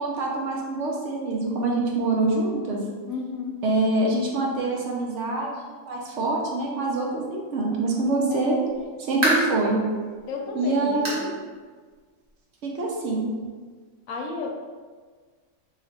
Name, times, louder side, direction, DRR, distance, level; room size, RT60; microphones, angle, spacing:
voice 1, 0.0-2.8 3.6-8.6 9.0-9.8 10.5-11.3 12.6-13.3, right 2 dB, 65° right, -1 dB, 0.8 m, -25 dB
voice 2, 3.1-3.6 8.3-8.6 10.3-11.2 14.1-14.5, left 4 dB, 75° left, 1 dB, 1.0 m, -32 dB
sound 1, 8.6-9.7 10.2-10.3 11.0-11.3 11.6-11.7 12.2-12.3 13.4-13.5, right 1 dB, 35° right, 0.8 m, -26 dB
3.1 x 2.4 x 4.1 m, 1.5 s
omnidirectional pair, 1.5 m